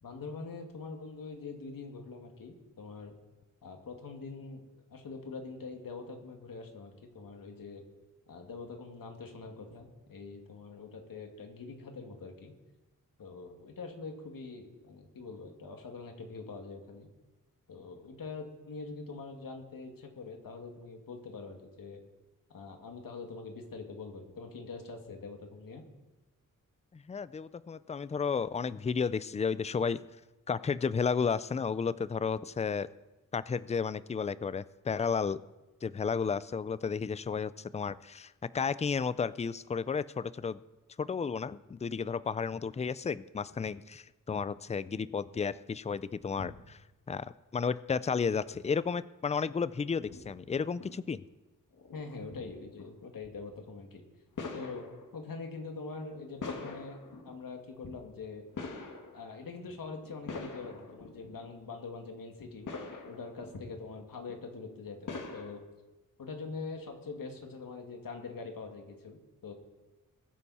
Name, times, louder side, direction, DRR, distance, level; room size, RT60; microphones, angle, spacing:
voice 1, 0.0-3.1 3.6-4.6 4.9-7.8 8.3-12.5 13.2-17.1 17.7-22.0 22.5-25.8 51.9-54.0 54.5-54.9 55.1-57.0 57.2-58.4 59.1-62.7 63.1-65.6 66.2-69.5, left 4 dB, 90° left, 3 dB, 2.3 m, -44 dB
voice 2, 26.9-30.0 30.5-32.9 33.3-35.4 35.8-40.6 41.0-46.8 47.1-51.2, left 5 dB, 20° left, 17 dB, 0.3 m, -32 dB
sound 1, 46.4-46.6 48.0-48.5 49.5-49.6 50.1-50.4 50.7-50.9 51.7-52.0 52.3-52.5 52.8-52.9 53.2-53.4 54.3-55.2 55.9-57.4 57.8-58.0 58.5-59.4 59.7-61.4 61.7-61.8 62.3-63.5 64.2-64.4 65.0-65.5, left 4 dB, 65° left, 2.0 m, -44 dB
21.0 x 9.2 x 4.3 m, 1.1 s
wide cardioid pair, 155°, 33 cm